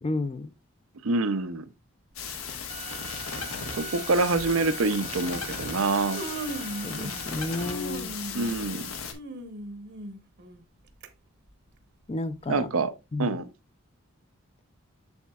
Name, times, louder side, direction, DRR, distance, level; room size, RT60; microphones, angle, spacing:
voice 1, 0.0-0.5 6.8-8.1 12.1-12.7 13.1-13.4, left 2 dB, 30° left, 0.4 m, -31 dB
voice 2, 1.0-1.6 3.7-6.2 8.3-8.9 12.5-12.9 13.2-13.5, right 3 dB, 85° right, 0.7 m, -26 dB
sound 1, 2.2-9.1, left 6 dB, 85° left, 1.3 m, -36 dB
Human voice, 2.3-2.6 3.6-3.7 4.3-4.5 5.5-5.6 5.9-7.3 7.6-11.1 11.5-11.6 12.4-12.5, right 2 dB, 55° right, 0.9 m, -38 dB
Bowed string instrument, 2.7-7.7, right 8 dB, 35° right, 0.5 m, -43 dB
7.3 x 7.1 x 2.3 m
head